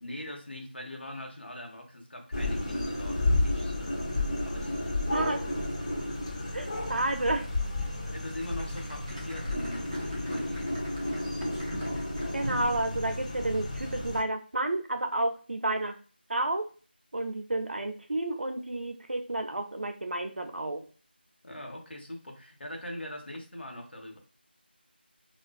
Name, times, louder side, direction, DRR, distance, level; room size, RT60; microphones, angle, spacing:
voice 1, 0.0-3.9 4.4-5.1 6.4-6.8 8.1-10.8 21.4-24.2, left 1 dB, 75° left, 1.0 m, -42 dB
sound 1, 2.3-14.2, left 2 dB, 35° left, 0.8 m, -32 dB
voice 2, 5.1-5.4 6.5-7.5 12.3-16.0 16.3-16.7 17.1-20.8, right 2 dB, 75° right, 0.5 m, -31 dB
Applause Clapping, 8.4-12.9 13.1-13.2, equal, 25° right, 0.6 m, -49 dB
2.4 x 2.4 x 2.3 m
figure-of-eight pair, 170°, 6 cm